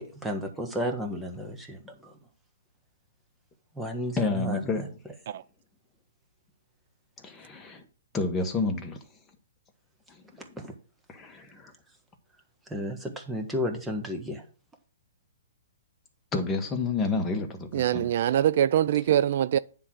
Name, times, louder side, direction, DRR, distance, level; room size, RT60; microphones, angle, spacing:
voice 1, 0.0-2.1 3.7-4.9 10.4-10.7 12.7-14.4, equal, 5° right, 1.4 m, -33 dB
voice 2, 4.2-4.8 7.2-7.8 8.1-9.0 11.1-11.7 16.3-18.1, left 3 dB, 15° left, 1.5 m, -29 dB
voice 3, 17.7-19.6, right 11 dB, 55° right, 0.3 m, -23 dB
9.8 x 3.8 x 6.2 m
hypercardioid pair, 135°, 0 cm